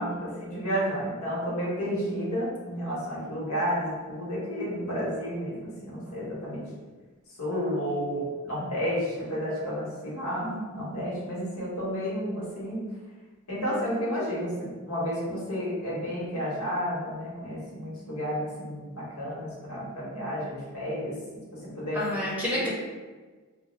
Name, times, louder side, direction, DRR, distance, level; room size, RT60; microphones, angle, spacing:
voice 1, 0.0-6.6 7.4-12.9 13.5-21.2 21.5-22.1 22.5-22.7, equal, 85° left, -6 dB, 1.2 m, -31 dB
voice 2, 10.4-10.8 21.9-22.7, equal, 5° right, -7 dB, 0.7 m, -30 dB
3.4 x 2.0 x 3.1 m, 1.4 s
head